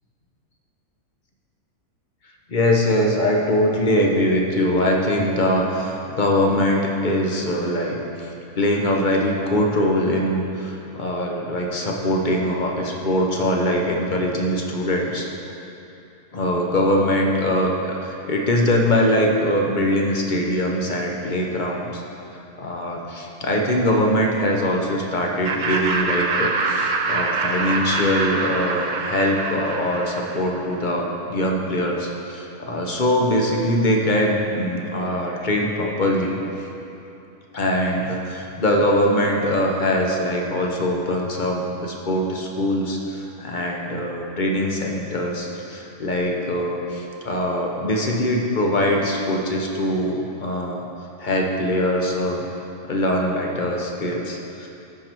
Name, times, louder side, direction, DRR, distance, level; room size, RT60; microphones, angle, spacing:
voice 1, 2.5-15.3 16.3-22.0 22.6-36.7 37.5-50.8 51.2-52.4 52.9-54.7, left 1 dB, 40° left, 0 dB, 0.8 m, -22 dB
Laughter, 25.4-30.7, right 3 dB, 80° right, 0.4 m, -25 dB
13.0 x 4.7 x 4.5 m, 2.9 s
omnidirectional pair, 1.6 m